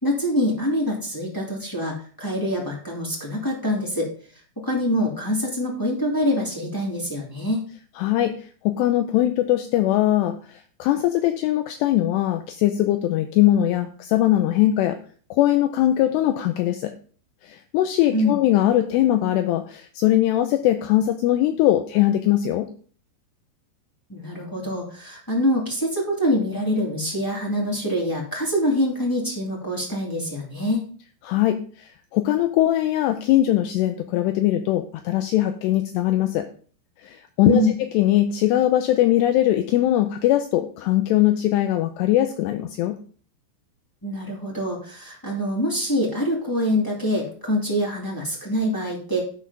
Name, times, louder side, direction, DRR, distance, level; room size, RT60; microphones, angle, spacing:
voice 1, 0.0-4.1 4.6-7.6 18.1-18.4 24.1-30.8 37.4-37.7 44.0-49.2, left 1 dB, 10° left, -4 dB, 1.0 m, -25 dB
voice 2, 8.0-15.0 15.3-16.9 17.4-22.7 31.2-36.5 37.0-37.6 37.9-43.0, left 13 dB, 80° left, 7 dB, 2.7 m, -21 dB
12.0 x 4.4 x 5.6 m, 0.43 s
omnidirectional pair, 5.1 m